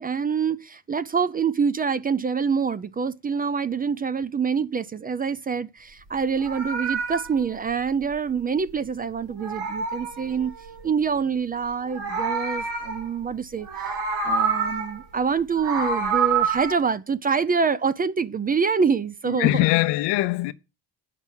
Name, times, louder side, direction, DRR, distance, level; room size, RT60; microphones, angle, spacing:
voice 1, 0.0-10.5 10.8-13.7 14.2-19.5, right 6 dB, 20° right, 0.4 m, -25 dB
Meow, 6.2-8.9 9.2-10.9 11.7-13.3 13.6-15.0 15.4-16.7, right 5 dB, 75° right, 2.4 m, -28 dB
voice 2, 19.3-20.5, left 17 dB, 80° left, 0.9 m, -22 dB
9.6 x 5.9 x 7.2 m
cardioid pair, 130°, 41 cm